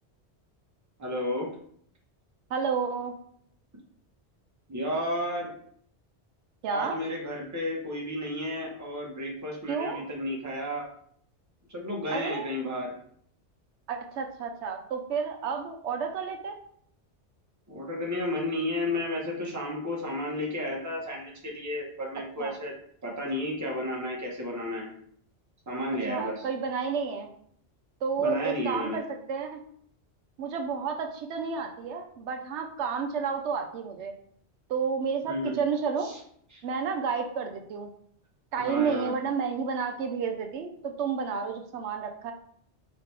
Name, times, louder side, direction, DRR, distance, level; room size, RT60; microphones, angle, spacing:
voice 1, 1.0-1.5 4.7-5.5 6.7-10.9 11.7-12.9 17.7-22.7 23.0-24.9 25.7-26.5 28.2-29.0 35.2-35.6 36.0-36.2 36.5-36.6 38.6-39.1, left 1 dB, 15° right, -2 dB, 0.9 m, -32 dB
voice 2, 2.5-3.2 6.6-7.0 9.7-10.0 12.1-12.5 13.9-16.6 22.4-22.5 26.1-27.3 28.0-29.6 30.4-34.1 34.7-36.1 36.6-37.9 38.5-42.3, right 6 dB, 85° right, 5 dB, 0.9 m, -31 dB
5.0 x 3.0 x 3.2 m, 0.63 s
omnidirectional pair, 1.1 m